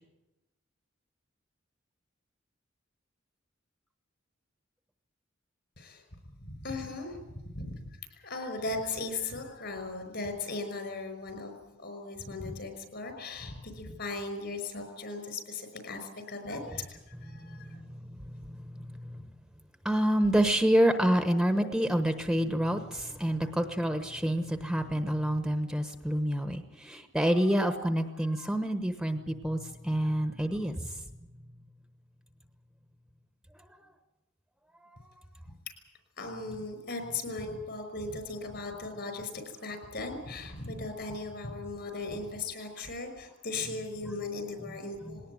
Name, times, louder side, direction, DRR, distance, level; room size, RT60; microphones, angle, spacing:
voice 1, 6.4-17.8 36.2-45.3, left 3 dB, 60° left, 7 dB, 5.5 m, -38 dB
voice 2, 17.4-19.2 19.8-31.0, equal, 5° right, 7 dB, 1.1 m, -28 dB
20.5 x 18.5 x 9.3 m, 1.0 s
head